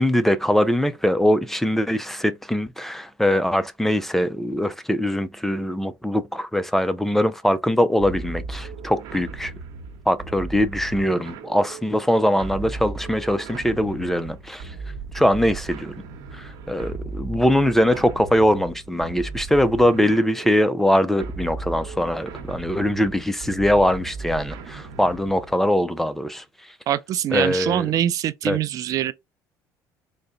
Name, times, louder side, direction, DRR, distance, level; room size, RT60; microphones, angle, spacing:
voice 1, 0.0-9.5 10.1-14.7 15.1-15.9 16.3-26.4 27.3-27.9 28.5-28.6, equal, 5° left, 0.4 m, -22 dB
sound 1, 8.0-25.6, right 4 dB, 75° right, 0.9 m, -36 dB
voice 2, 26.9-29.1, right 11 dB, 55° right, 0.4 m, -24 dB
3.9 x 2.1 x 3.7 m
cardioid pair, 105°, 7 cm